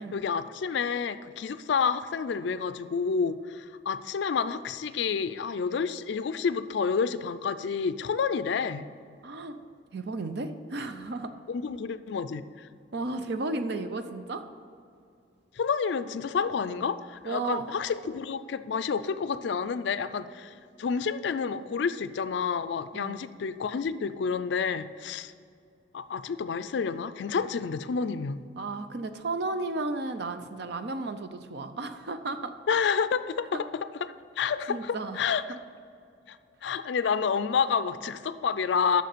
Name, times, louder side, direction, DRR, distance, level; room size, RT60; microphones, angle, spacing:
voice 1, 0.0-8.9 11.5-12.7 15.6-25.3 25.9-28.4 32.7-35.6 36.3-36.4 36.6-39.0, left 6 dB, 65° left, 13 dB, 0.4 m, -29 dB
voice 2, 9.2-9.6 9.9-11.3 12.9-14.4 17.3-17.7 22.9-23.2 28.6-32.5 33.5-33.6 34.7-35.2, right 3 dB, 60° right, 9 dB, 0.6 m, -33 dB
6.6 x 6.4 x 6.7 m, 2.4 s
head